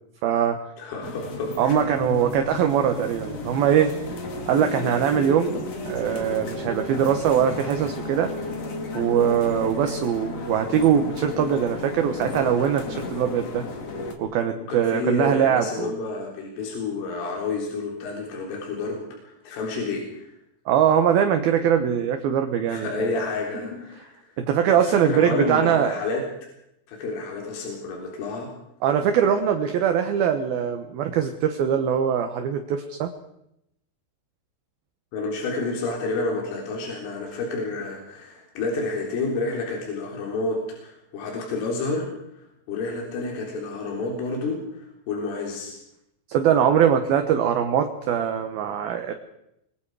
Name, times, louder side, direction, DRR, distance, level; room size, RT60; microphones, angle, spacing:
voice 1, 0.2-0.6 1.6-3.9 4.5-5.6 5.9-8.3 8.9-13.6 14.2-15.9 20.7-23.1 24.4-26.0 28.8-33.1 46.3-49.1, right 8 dB, 70° right, 6 dB, 2.4 m, -22 dB
voice 2, 0.8-1.8 14.7-20.3 22.7-24.3 24.7-26.2 26.9-28.5 35.1-42.1 42.7-45.8, left 3 dB, 75° left, -1 dB, 6.3 m, -30 dB
sound 1, 1.0-14.2, left 2 dB, 40° left, 2.5 m, -33 dB
28.5 x 22.0 x 4.9 m, 0.80 s
omnidirectional pair, 5.8 m